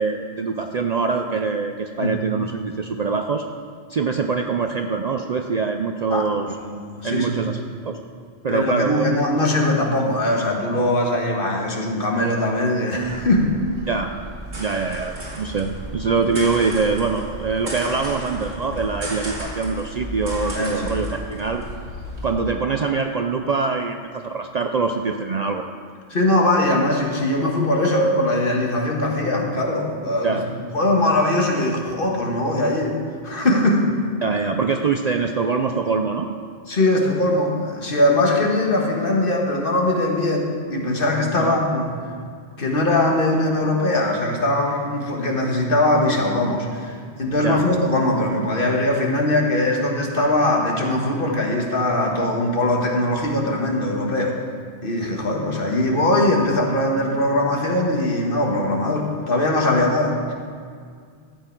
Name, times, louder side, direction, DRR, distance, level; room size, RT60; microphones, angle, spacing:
voice 1, 0.0-3.4 3.9-6.5 7.0-8.0 8.4-9.0 13.9-14.1 14.6-21.7 22.2-25.6 30.2-30.5 34.2-36.3 41.4-41.6 47.4-47.7, right 4 dB, 50° right, 5 dB, 0.5 m, -24 dB
voice 2, 6.6-7.4 8.5-13.6 14.7-14.8 20.5-21.0 26.1-33.0 33.2-33.9 36.7-41.9 42.6-54.3 54.8-60.3, left 1 dB, 55° left, 0 dB, 1.6 m, -21 dB
sound 1, 13.0-22.3, right 1 dB, 90° right, 2.6 m, -33 dB
13.5 x 7.8 x 4.6 m, 2.1 s
omnidirectional pair, 1.1 m